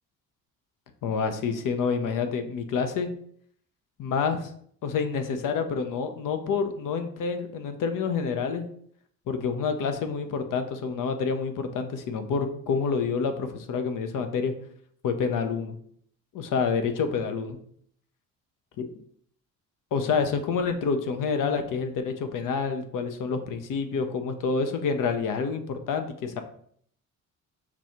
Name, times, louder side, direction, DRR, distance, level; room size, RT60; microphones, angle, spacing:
voice 1, 1.0-3.1 4.0-4.5 4.8-8.6 9.3-14.5 15.0-15.8 16.3-17.6 19.9-26.4, left 5 dB, 50° left, 7 dB, 0.7 m, -28 dB
5.8 x 2.3 x 2.9 m, 0.63 s
hypercardioid pair, 50°, 43 cm